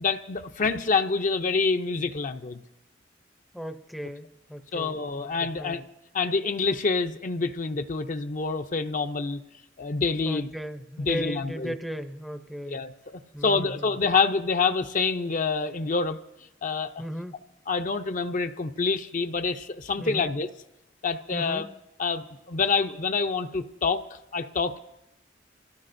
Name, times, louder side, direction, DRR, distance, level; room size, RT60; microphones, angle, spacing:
voice 1, 0.0-2.6 4.7-5.8 6.1-9.4 9.8-10.5 11.0-11.7 12.7-16.2 16.6-17.0 17.7-20.5 21.0-21.7 22.0-24.0 24.3-24.8, left 4 dB, 45° left, 7 dB, 0.5 m, -27 dB
voice 2, 3.5-5.8 10.2-12.8 13.3-14.0 17.0-17.4 20.0-20.3 21.3-21.7, equal, ahead, 7 dB, 0.5 m, -36 dB
26.0 x 16.5 x 2.6 m, 0.92 s
head